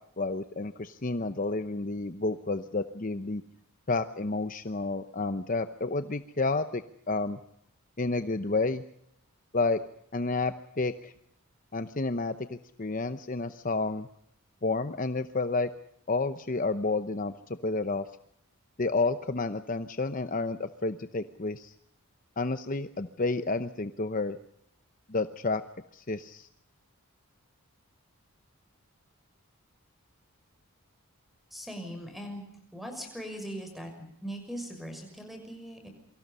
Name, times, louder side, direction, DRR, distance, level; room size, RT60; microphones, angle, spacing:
voice 1, 0.2-3.4 3.9-7.4 8.0-8.8 9.5-9.8 10.1-11.1 11.7-14.1 14.6-15.7 16.1-18.1 18.8-21.7 22.4-24.4 25.1-25.6 25.9-26.5, left 3 dB, 35° left, 10 dB, 0.8 m, -30 dB
voice 2, 31.5-35.9, equal, ahead, 5 dB, 6.2 m, -40 dB
28.0 x 24.0 x 5.6 m, 0.74 s
head